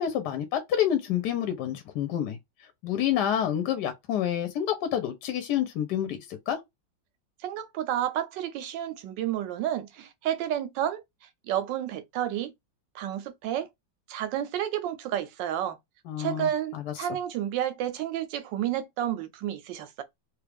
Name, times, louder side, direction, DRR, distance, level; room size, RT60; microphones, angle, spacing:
voice 1, 0.0-2.4 2.8-6.6 16.1-16.9, left 10 dB, 70° left, 1.2 m, -28 dB
voice 2, 7.4-11.0 11.4-12.5 12.9-13.7 14.1-15.8 16.2-20.0, right 11 dB, 80° right, 1.3 m, -30 dB
3.1 x 2.4 x 3.4 m
omnidirectional pair, 2.0 m